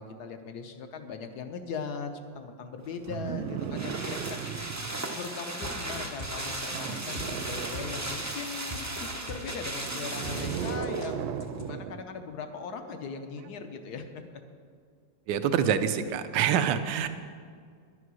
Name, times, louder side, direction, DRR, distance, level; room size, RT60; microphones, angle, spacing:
voice 1, 0.0-4.4 5.1-14.2, left 5 dB, 60° left, 7 dB, 1.3 m, -39 dB
sound 1, 2.9-11.1 11.4-11.5, right 1 dB, 20° right, 0.4 m, -37 dB
sound 2, 3.1-5.0 6.7-8.5 9.8-12.0 13.4-13.5, right 8 dB, 90° right, 1.4 m, -36 dB
sound 3, 5.6-11.6, left 1 dB, 25° left, 0.5 m, -42 dB
voice 2, 15.3-17.1, right 8 dB, 70° right, 10 dB, 1.3 m, -26 dB
11.0 x 9.6 x 6.2 m, 2.1 s
omnidirectional pair, 2.1 m